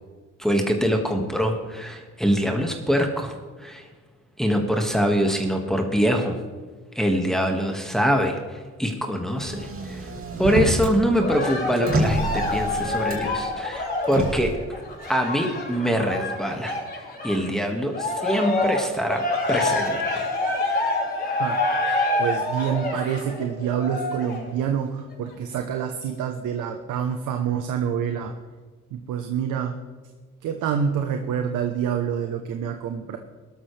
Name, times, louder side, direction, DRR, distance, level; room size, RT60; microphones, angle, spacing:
voice 1, 0.4-3.9 4.4-6.4 7.0-10.1 10.4-14.6 15.1-16.8 17.2-20.3, equal, ahead, 2 dB, 1.9 m, -24 dB
Motor vehicle (road), 9.4-11.0 11.3-13.4 14.0-14.5, right 2 dB, 45° right, 2.7 m, -27 dB
Cheering, 11.2-17.5 17.9-24.5 25.1-25.2, left 2 dB, 30° left, 4.6 m, -27 dB
voice 2, 22.2-28.3 28.9-29.8 30.4-33.2, right 8 dB, 85° right, 5 dB, 1.1 m, -27 dB
18.5 x 13.0 x 3.4 m, 1.4 s
cardioid pair, 90°, 30 cm